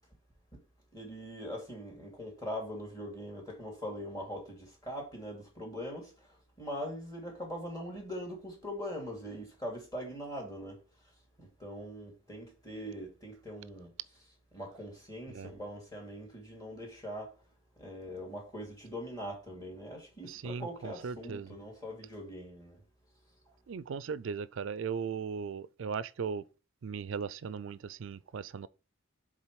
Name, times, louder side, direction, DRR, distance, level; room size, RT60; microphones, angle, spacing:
voice 1, 0.9-10.8 11.4-13.9 14.5-17.4 17.8-22.8, equal, 20° left, 2.4 m, -42 dB
voice 2, 20.2-21.5 23.7-26.4 26.8-28.7, right 6 dB, 70° right, 0.4 m, -38 dB
7.3 x 3.8 x 4.7 m
head